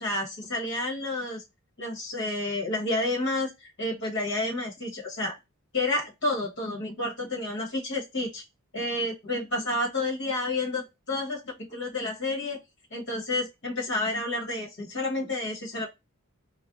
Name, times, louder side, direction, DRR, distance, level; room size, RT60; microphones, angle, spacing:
voice 1, 0.0-1.4 1.8-5.3 5.7-8.4 8.7-12.6 12.9-15.9, left 2 dB, 55° left, -2 dB, 1.2 m, -30 dB
4.2 x 2.2 x 2.4 m, 0.23 s
head